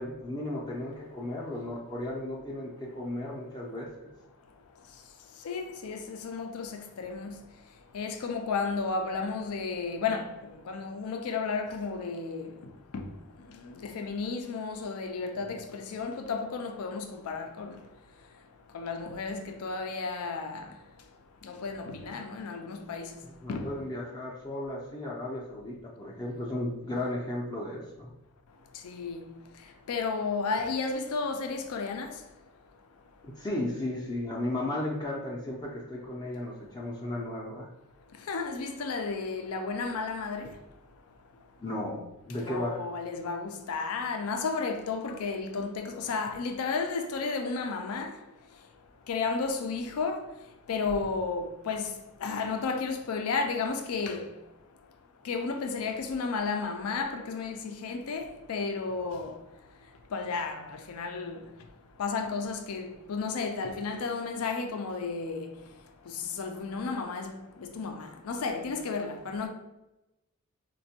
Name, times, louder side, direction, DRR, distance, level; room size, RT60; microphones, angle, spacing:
voice 1, 0.0-4.1 23.2-28.1 33.2-37.7 41.6-42.8, left 1 dB, 20° left, 0.4 m, -35 dB
voice 2, 5.4-7.4 7.9-12.5 12.9-13.1 13.5-17.8 18.7-20.7 21.4-23.1 23.5-23.7 28.8-29.3 29.9-32.2 38.3-40.5 42.4-48.2 49.1-50.3 50.7-51.9 52.2-54.3 55.2-59.4 60.1-61.4 62.0-65.5 66.1-69.5, left 4 dB, 90° left, 0.4 m, -33 dB
4.2 x 2.2 x 2.7 m
head